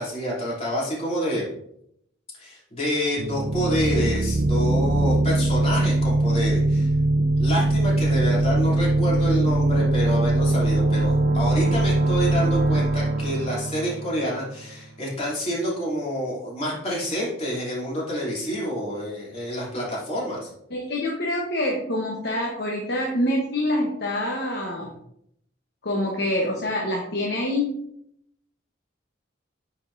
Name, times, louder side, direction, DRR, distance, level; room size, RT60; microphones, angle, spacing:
voice 1, 0.0-1.5 2.4-6.9 7.4-20.5, equal, 35° left, -5 dB, 3.0 m, -28 dB
sound 1, 3.2-14.8, right 2 dB, 75° right, 0.6 m, -22 dB
voice 2, 20.7-24.9 25.8-27.8, left 1 dB, 60° left, -1 dB, 1.1 m, -26 dB
9.9 x 5.3 x 2.7 m, 0.73 s
head